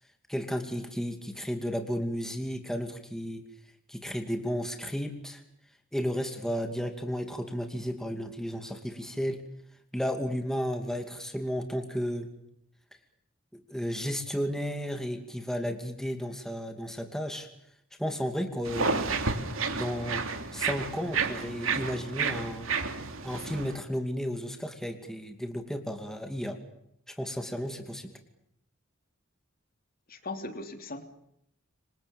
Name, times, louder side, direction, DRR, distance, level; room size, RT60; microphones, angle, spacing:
voice 1, 0.3-3.4 3.9-5.4 5.9-9.4 9.9-12.3 13.5-17.5 18.0-19.1 19.7-20.2 20.5-22.7 23.2-26.6 27.1-28.1, equal, ahead, 5 dB, 2.6 m, -33 dB
sound 1, 18.6-23.8, right 4 dB, 70° right, 3.0 m, -31 dB
voice 2, 30.1-31.0, left 2 dB, 45° left, 7 dB, 3.1 m, -38 dB
28.5 x 25.0 x 7.2 m, 0.77 s
head